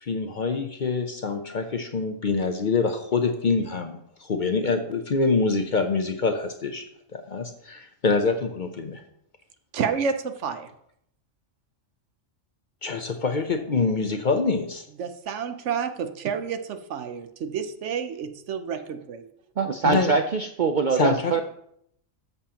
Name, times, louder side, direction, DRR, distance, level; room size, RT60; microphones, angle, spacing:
voice 1, 0.0-6.8 7.1-9.0 12.8-14.8 19.8-20.1 20.9-21.4, left 4 dB, 50° left, 6 dB, 0.7 m, -25 dB
voice 2, 9.7-10.7 15.0-19.3, right 6 dB, 70° right, 9 dB, 1.0 m, -30 dB
voice 3, 19.6-21.4, right 4 dB, 55° right, 5 dB, 0.5 m, -23 dB
13.0 x 7.0 x 2.9 m, 0.72 s
omnidirectional pair, 1.3 m